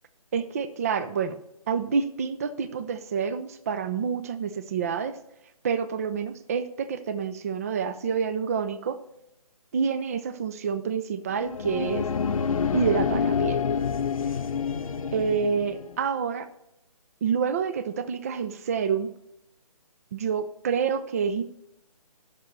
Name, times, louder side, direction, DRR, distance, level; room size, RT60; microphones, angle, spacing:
voice 1, 0.3-1.4 1.7-5.2 5.6-9.0 9.7-12.1 12.7-13.6 15.1-16.5 17.2-19.1 20.1-21.4, right 6 dB, 25° right, 13 dB, 0.4 m, -28 dB
sound 1, 11.3-16.0, left 6 dB, 65° left, 0.7 m, -27 dB
16.5 x 6.0 x 3.1 m, 0.84 s
figure-of-eight pair, 150°, 19 cm